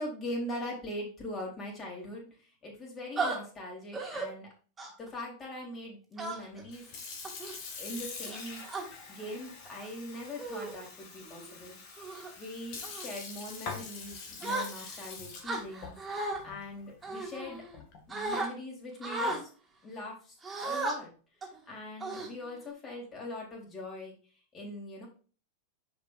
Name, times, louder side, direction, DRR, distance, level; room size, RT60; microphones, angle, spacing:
voice 1, 0.0-2.3 2.6-4.5 5.0-6.9 7.8-8.6 9.1-11.8 12.4-16.0 16.4-17.6 18.1-19.5 19.8-20.4 20.6-21.1 21.7-24.2 24.5-25.1, left 1 dB, 25° left, -1 dB, 3.9 m, -41 dB
sound 1, 3.2-3.4 3.9-4.3 4.8-5.1 6.2-6.6 7.2-7.5 8.3-8.8 9.7-9.9 10.4-10.7 11.2-11.5 12.0-12.3 12.8-13.1 14.4-15.0 15.4-16.4 17.0-17.8 18.1-18.5 19.0-19.4 20.4-20.9 21.4-21.6 22.0-22.7, right 2 dB, 15° right, 2.5 m, -35 dB
Sink (filling or washing) / Fill (with liquid), 6.6-18.1, left 4 dB, 40° left, 2.2 m, -45 dB
10.0 x 5.2 x 2.7 m, 0.38 s
figure-of-eight pair, 90°, 0 cm